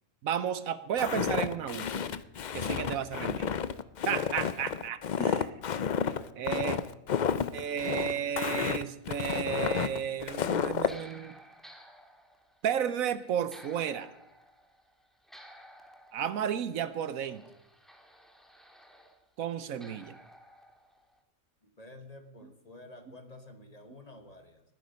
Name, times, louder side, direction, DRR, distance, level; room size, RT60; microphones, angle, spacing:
voice 1, 0.2-2.0 2.5-3.5 4.1-5.5 6.4-6.8 7.5-11.3 12.6-14.1 16.1-17.4 19.4-20.2, right 8 dB, 70° right, 14 dB, 1.2 m, -33 dB
Walk footsteps, 1.0-10.9, left 7 dB, 70° left, 0.4 m, -31 dB
voice 2, 6.0-6.5 21.6-24.6, left 1 dB, 30° left, 7 dB, 1.4 m, -51 dB
sound 1, 8.2-10.2 10.5-19.3 19.8-21.2, equal, ahead, 1.6 m, -55 dB
20.0 x 10.0 x 5.2 m, 0.85 s
omnidirectional pair, 1.5 m